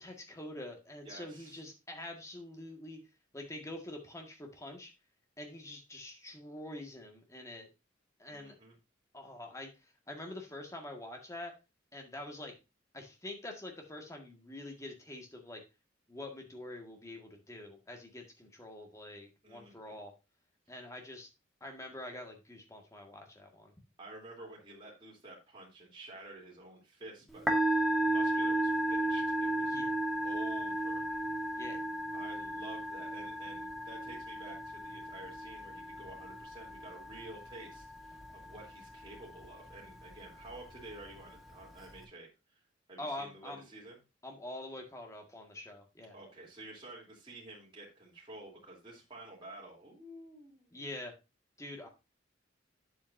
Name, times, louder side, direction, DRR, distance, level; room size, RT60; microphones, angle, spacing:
voice 1, 0.0-3.0 3.3-4.9 5.4-7.7 8.2-8.6 9.1-11.5 11.9-12.6 12.9-15.6 16.1-20.1 20.7-21.3 21.6-23.7 29.7-29.9 31.6-31.8 43.0-43.7 44.2-46.1 50.7-51.1 51.6-51.9, left 1 dB, 15° left, 2 dB, 1.9 m, -45 dB
voice 2, 1.0-1.6 8.3-8.8 19.4-20.0 24.0-29.8 30.2-31.3 32.1-42.3 42.9-44.0 46.1-50.8, right 2 dB, 25° right, -4 dB, 3.5 m, -50 dB
Musical instrument, 27.3-42.0, right 1 dB, ahead, 1.7 m, -35 dB
9.2 x 7.8 x 2.7 m, 0.27 s
head